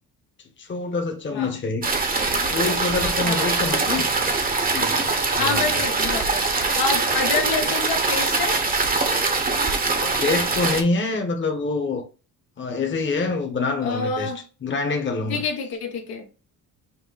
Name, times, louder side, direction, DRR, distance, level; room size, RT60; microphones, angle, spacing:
voice 1, 0.6-1.9 2.5-4.1 4.7-5.8 10.0-12.1 12.6-14.3 14.6-15.4, left 3 dB, 30° left, 1.0 m, -26 dB
sound 1, 1.8-10.8, right 3 dB, 25° right, 0.8 m, -23 dB
voice 2, 5.4-8.6 13.8-14.4 15.3-16.3, left 4 dB, 75° left, 1.2 m, -27 dB
5.6 x 2.1 x 3.9 m
cardioid pair, 85°, 36 cm